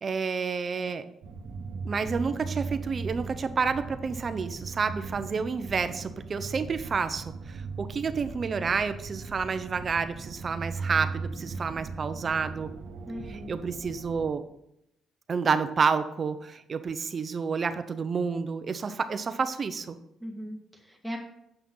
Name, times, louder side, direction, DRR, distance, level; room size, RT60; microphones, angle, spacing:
voice 1, 0.0-1.1 1.8-12.7 13.3-14.4 15.3-20.0, right 5 dB, 45° right, 10 dB, 0.8 m, -29 dB
sound 1, 1.2-14.3, right 4 dB, 75° right, 1.0 m, -38 dB
voice 2, 13.1-13.5 20.2-21.2, equal, ahead, 1 dB, 2.2 m, -38 dB
8.2 x 5.9 x 5.6 m, 0.81 s
cardioid pair, 90°, 0 cm